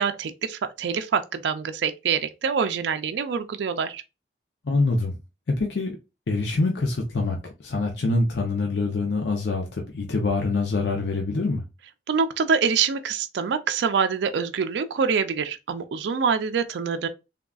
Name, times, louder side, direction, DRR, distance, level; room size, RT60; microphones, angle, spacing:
voice 1, 0.0-4.0 12.1-17.1, right 6 dB, 80° right, 0.4 m, -25 dB
voice 2, 4.6-5.2 5.6-6.0 6.3-7.4 7.6-11.6, left 3 dB, 80° left, 0.6 m, -25 dB
3.5 x 2.3 x 2.3 m
head